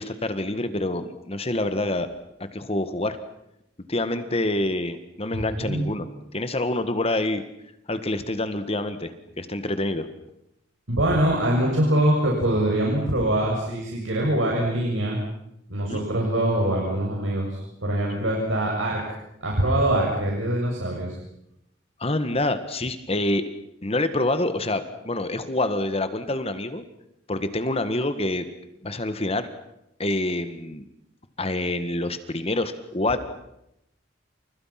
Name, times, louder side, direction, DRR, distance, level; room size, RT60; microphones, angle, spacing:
voice 1, 0.0-2.1 2.5-3.2 3.9-6.1 6.3-7.4 7.9-10.1 15.9-16.1 22.0-23.4 23.8-26.9 27.3-28.5 28.8-29.5 30.0-30.9 31.4-33.2, left 2 dB, 30° left, 10 dB, 1.8 m, -26 dB
voice 2, 5.3-5.9 10.9-15.2 15.7-19.0 19.4-21.1, right 1 dB, 90° right, -2 dB, 7.3 m, -23 dB
30.0 x 28.5 x 6.0 m, 0.82 s
head